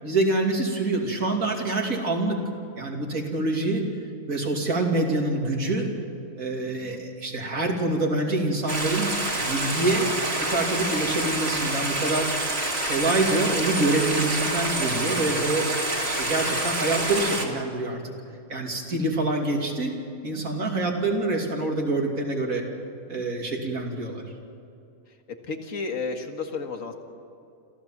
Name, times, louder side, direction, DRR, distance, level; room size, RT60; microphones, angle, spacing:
voice 1, 0.0-2.4 2.8-3.8 4.2-5.9 6.3-9.1 9.4-10.1 10.5-12.3 12.8-15.7 16.0-18.0 18.5-20.0 20.2-22.6 23.1-24.2, right 2 dB, 75° right, 1 dB, 3.2 m, -26 dB
voice 2, 6.7-7.0 20.8-21.1 25.4-26.9, left 4 dB, 70° left, 5 dB, 2.1 m, -33 dB
Stream, 8.7-17.5, right 2 dB, 45° right, 2.9 m, -27 dB
27.0 x 15.0 x 7.3 m, 2.6 s
omnidirectional pair, 1.4 m